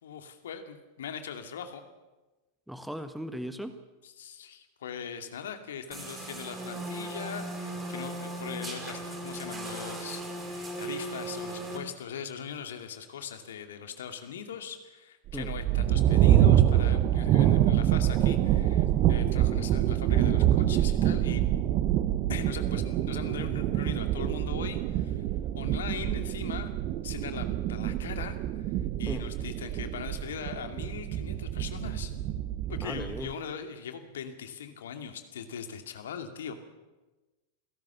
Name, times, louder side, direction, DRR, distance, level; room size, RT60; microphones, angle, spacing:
voice 1, 0.0-1.8 4.0-21.4 22.3-25.3 25.6-28.7 29.0-32.1 32.7-36.7, left 7 dB, 60° left, 7 dB, 2.4 m, -40 dB
voice 2, 2.7-3.8 15.3-15.5 29.1-29.2 32.8-33.3, equal, ahead, 9 dB, 1.5 m, -37 dB
sound 1, 5.9-11.8, right 1 dB, 20° right, 4.6 m, -37 dB
sound 2, 15.3-33.3, right 12 dB, 40° right, 1.1 m, -26 dB
28.0 x 17.0 x 7.1 m, 1.2 s
figure-of-eight pair, 90°, 0 cm